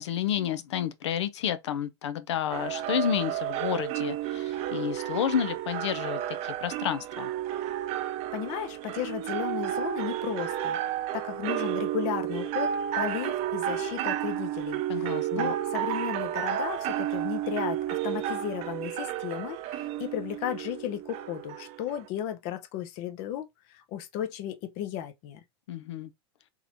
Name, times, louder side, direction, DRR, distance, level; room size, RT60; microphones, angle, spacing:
voice 1, 0.0-7.3 14.9-15.5 25.7-26.1, left 9 dB, 80° left, 0.6 m, -30 dB
sound 1, 2.5-22.1, right 11 dB, 50° right, 0.6 m, -32 dB
voice 2, 8.3-10.8 11.1-12.7 13.0-25.4, left 10 dB, 55° left, 0.9 m, -35 dB
3.8 x 3.1 x 2.7 m
hypercardioid pair, 105°, 14 cm